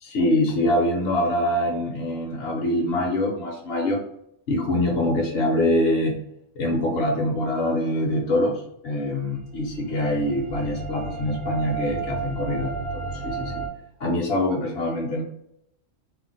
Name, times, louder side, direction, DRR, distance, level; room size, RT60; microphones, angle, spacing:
voice 1, 0.0-4.0 4.5-6.2 6.6-13.6 14.0-15.2, left 1 dB, 60° left, -1 dB, 0.7 m, -24 dB
sound 1, 9.3-13.7, right 4 dB, 50° right, 0.6 m, -32 dB
2.5 x 2.0 x 3.9 m, 0.76 s
omnidirectional pair, 1.3 m